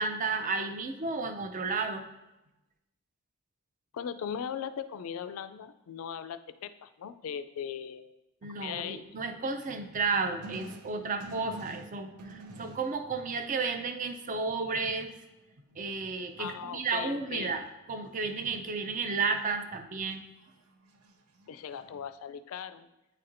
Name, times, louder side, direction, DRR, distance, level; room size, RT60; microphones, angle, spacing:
voice 1, 0.0-2.0 8.4-15.1 15.8-17.6 17.9-20.2, right 4 dB, 35° right, 6 dB, 0.4 m, -32 dB
voice 2, 3.9-8.2 8.6-9.0 16.4-17.5 21.5-22.9, left 8 dB, 65° left, 11 dB, 0.3 m, -39 dB
sound 1, 10.2-13.3 14.2-14.4 14.7-16.8 18.1-19.4 20.0-22.0, right 1 dB, 85° right, 0.6 m, -49 dB
9.2 x 4.1 x 2.6 m, 0.97 s
head